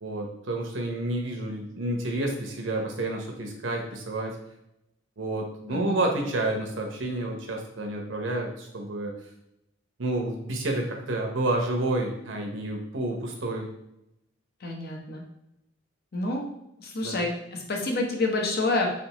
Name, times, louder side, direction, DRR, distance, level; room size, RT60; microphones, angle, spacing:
voice 1, 0.0-4.3 5.2-9.1 10.0-13.7 17.0-17.2, right 2 dB, 80° right, 2 dB, 0.8 m, -29 dB
voice 2, 5.7-6.0 14.6-15.2 16.1-16.4 16.8-18.9, left 2 dB, 55° left, 1 dB, 0.8 m, -28 dB
3.7 x 3.4 x 3.0 m, 0.83 s
head